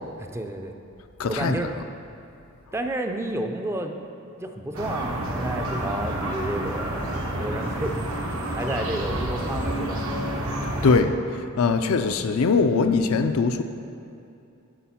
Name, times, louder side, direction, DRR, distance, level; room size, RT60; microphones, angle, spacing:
voice 1, 0.2-0.7 1.2-1.7 2.7-3.9 4.2-10.2 10.8-10.9 11.7-11.8, right 1 dB, 10° right, 5 dB, 0.4 m, -31 dB
voice 2, 1.2-1.6 10.8-11.1 11.6-13.6, left 4 dB, 75° left, 8 dB, 0.5 m, -21 dB
sound 1, 4.7-11.0, right 1 dB, 75° right, 1.1 m, -29 dB
10.5 x 5.0 x 5.7 m, 2.7 s
head